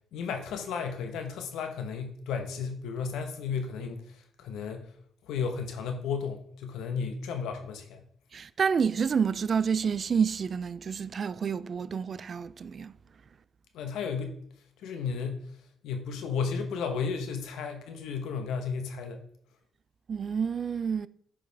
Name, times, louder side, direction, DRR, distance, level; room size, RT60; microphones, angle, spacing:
voice 1, 0.1-4.0 4.4-4.9 5.2-8.0 13.7-14.4 14.8-15.5 15.8-19.2, left 5 dB, 85° left, 1.0 m, -33 dB
voice 2, 8.3-12.9 20.1-21.1, right 6 dB, 45° right, 0.3 m, -29 dB
8.6 x 5.1 x 3.5 m
cardioid pair, 90°, 0 cm